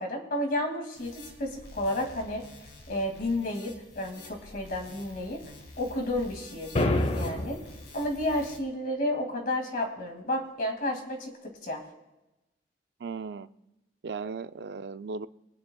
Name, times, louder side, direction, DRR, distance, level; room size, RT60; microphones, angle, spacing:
voice 1, 0.0-2.4 2.9-5.4 5.8-6.8 7.1-7.6 7.9-11.8, left 1 dB, 55° left, 2 dB, 2.3 m, -31 dB
sound 1, 0.9-8.6, left 2 dB, 75° left, 2.5 m, -49 dB
sound 2, 6.8-7.8, left 1 dB, 40° left, 0.8 m, -26 dB
voice 2, 13.0-13.5 14.0-15.3, right 4 dB, 70° right, 13 dB, 0.4 m, -36 dB
23.5 x 9.3 x 2.3 m, 0.99 s
head